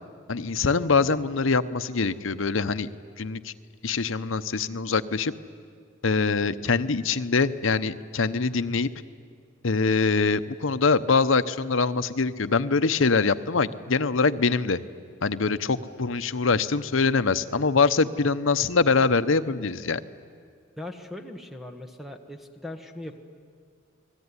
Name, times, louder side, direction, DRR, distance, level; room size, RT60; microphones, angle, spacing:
voice 1, 0.3-2.9 3.2-3.5 3.8-5.3 6.0-8.9 9.6-14.8 15.2-20.0, left 4 dB, 75° left, 12 dB, 0.9 m, -24 dB
voice 2, 20.8-23.2, left 1 dB, ahead, 5 dB, 1.4 m, -39 dB
29.5 x 20.5 x 9.8 m, 2.1 s
head